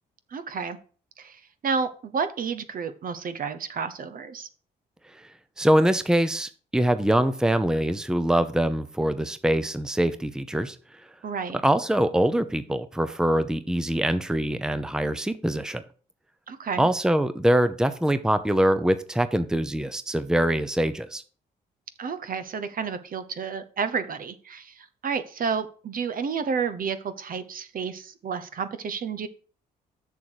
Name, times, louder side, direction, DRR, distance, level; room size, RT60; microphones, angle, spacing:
voice 1, 0.3-0.8 1.2-4.5 11.2-11.6 16.5-16.9 22.0-29.3, right 6 dB, 55° right, 11 dB, 0.9 m, -31 dB
voice 2, 5.6-10.8 11.6-15.8 16.8-21.2, right 1 dB, 5° right, 11 dB, 0.7 m, -23 dB
6.9 x 6.5 x 4.7 m, 0.41 s
cardioid pair, 75°, 18 cm